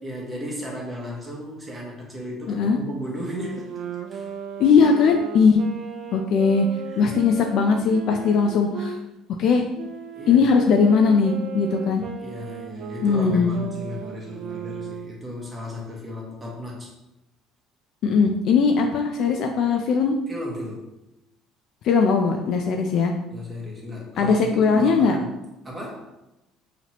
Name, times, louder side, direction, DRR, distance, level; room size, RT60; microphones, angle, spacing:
voice 1, 0.0-3.7 4.1-4.3 6.9-7.1 10.1-10.5 12.2-16.9 20.3-20.9 23.3-25.3 25.6-26.1, equal, 10° right, -3 dB, 1.0 m, -35 dB
voice 2, 2.5-2.8 4.6-5.6 6.1-6.7 7.0-9.0 9.4-9.6 10.3-12.0 13.0-13.6 18.0-20.2 21.8-23.1 24.2-25.2, left 5 dB, 50° left, 3 dB, 0.4 m, -19 dB
Wind instrument woodwind instrument, 3.2-9.0 9.7-15.2, right 6 dB, 50° right, 0.4 m, -36 dB
5.7 x 2.9 x 2.9 m, 0.92 s
cardioid pair, 160°, 0 cm